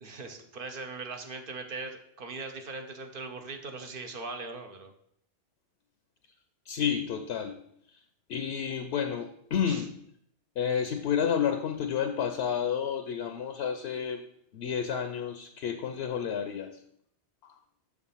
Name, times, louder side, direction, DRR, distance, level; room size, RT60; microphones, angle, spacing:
voice 1, 0.0-4.9 9.7-9.8, right 3 dB, 55° right, 5 dB, 0.8 m, -40 dB
voice 2, 6.7-7.6 7.9-8.0 8.3-10.0 10.6-14.2 14.5-16.8 17.4-17.6, left 8 dB, 70° left, 6 dB, 0.8 m, -30 dB
6.5 x 3.5 x 5.5 m, 0.70 s
omnidirectional pair, 1.1 m